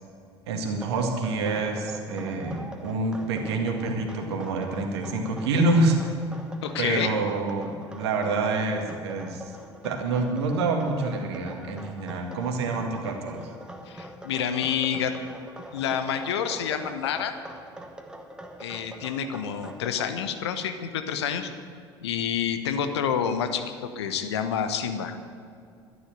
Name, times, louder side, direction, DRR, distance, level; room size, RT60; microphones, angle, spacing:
voice 1, 0.5-6.2 6.8-9.4 9.8-13.5, right 3 dB, 65° right, 3 dB, 2.0 m, -27 dB
sound 1, 0.7-20.1, right 1 dB, 5° right, 1.4 m, -44 dB
voice 2, 6.6-7.1 13.9-15.1 15.7-17.4 18.6-21.5 22.0-25.2, left 8 dB, 65° left, 8 dB, 1.1 m, -28 dB
12.0 x 11.0 x 7.9 m, 2.4 s
figure-of-eight pair, 65°, 15 cm